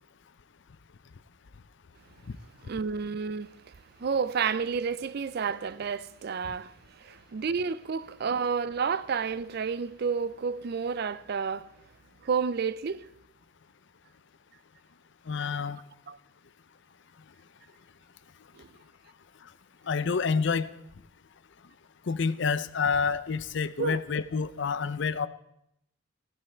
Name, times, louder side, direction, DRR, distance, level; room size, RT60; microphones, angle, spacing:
voice 1, 2.6-3.5 4.0-11.7 12.2-13.1 16.1-16.2 18.6-18.7 23.8-24.0, right 6 dB, 50° right, 0.4 m, -30 dB
voice 2, 15.3-15.8 19.9-20.7 22.1-25.3, left 5 dB, 60° left, 0.5 m, -28 dB
15.0 x 9.6 x 4.4 m
head